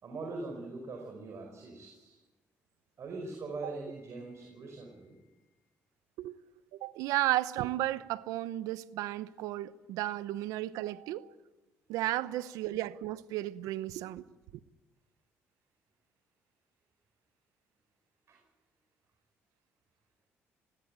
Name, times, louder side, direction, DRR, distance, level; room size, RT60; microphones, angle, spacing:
voice 1, 0.0-2.2 3.0-5.4 12.0-12.4 18.3-18.4, right 3 dB, 55° right, 5.2 m, -42 dB
voice 2, 6.8-11.3 11.9-14.2, right 15 dB, 85° right, 0.9 m, -33 dB
20.0 x 16.5 x 9.2 m
supercardioid pair, 75°, 6 cm